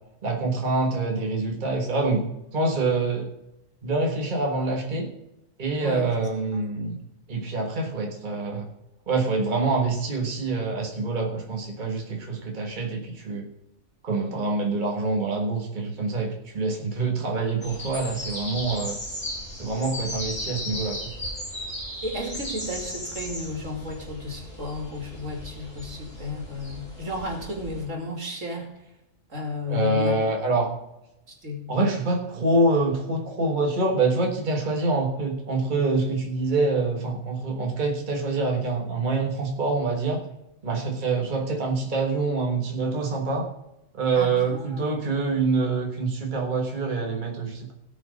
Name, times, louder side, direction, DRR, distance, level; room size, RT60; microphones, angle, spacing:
voice 1, 0.2-2.3 2.5-3.3 3.8-5.1 5.6-7.0 7.3-8.7 9.1-13.5 14.0-19.0 19.5-21.1 29.7-30.7 31.7-40.2 40.6-43.5 43.9-47.7, right 3 dB, 40° right, 1 dB, 1.6 m, -26 dB
sound 1, 17.6-27.8, left 1 dB, 25° left, 4.3 m, -36 dB
voice 2, 22.0-28.7 29.3-30.2 31.4-31.7 44.1-44.9, left 2 dB, 75° right, 1 dB, 3.0 m, -33 dB
17.0 x 6.1 x 5.2 m, 0.91 s
omnidirectional pair, 1.3 m